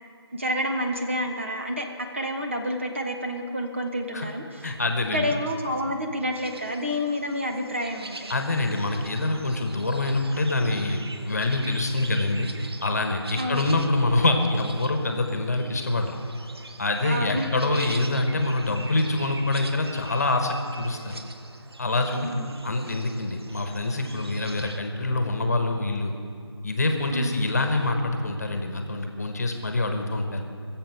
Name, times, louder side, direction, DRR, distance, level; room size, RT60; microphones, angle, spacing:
voice 1, 0.3-1.8 2.1-4.8 5.1-8.2 13.4-13.6 17.0-17.5 22.2-22.5 27.1-27.4, equal, 30° right, 3 dB, 0.8 m, -29 dB
voice 2, 4.6-5.3 8.3-12.5 12.8-16.2 16.8-21.2 21.8-22.3 22.6-26.1 26.6-30.4, left 2 dB, 35° left, 5 dB, 1.2 m, -25 dB
sound 1, 6.3-24.8, right 2 dB, 65° right, 1.1 m, -43 dB
21.5 x 7.6 x 5.9 m, 2.4 s
figure-of-eight pair, 170°, 14 cm